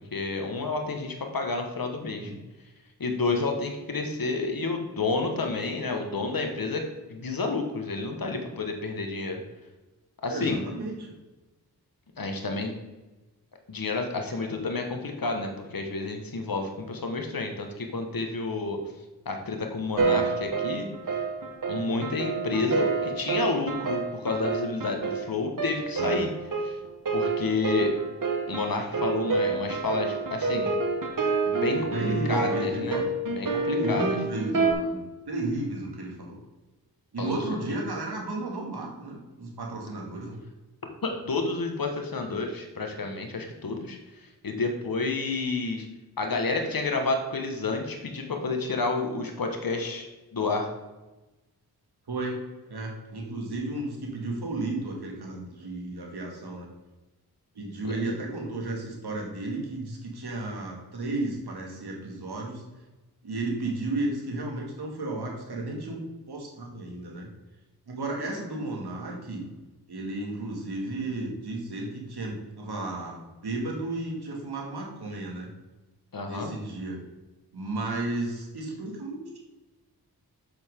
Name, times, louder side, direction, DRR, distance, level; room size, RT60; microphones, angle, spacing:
voice 1, 0.1-2.3 3.0-6.8 7.1-9.4 10.2-10.6 12.2-12.7 13.7-18.8 19.3-20.9 21.7-26.3 26.6-26.8 27.1-28.0 28.5-30.8 31.5-33.0 33.3-34.2 37.2-37.4 37.7-37.8 41.0-44.0 44.4-45.9 46.2-50.1 50.3-50.7 57.8-57.9 76.1-76.5, left 3 dB, 60° left, 4 dB, 1.6 m, -30 dB
voice 2, 10.3-11.1 21.8-22.0 31.8-33.3 33.7-35.0 35.3-36.4 37.1-40.4 52.1-52.4 52.7-56.7 57.5-62.6 63.2-66.0 66.3-67.3 67.9-69.5 69.9-75.5 76.2-77.0 77.5-79.4, right 2 dB, 75° right, 0 dB, 2.3 m, -33 dB
sound 1, 20.0-34.7, right 4 dB, 50° right, 1.4 m, -28 dB
7.7 x 7.2 x 3.8 m, 1.1 s
cardioid pair, 40°, 40 cm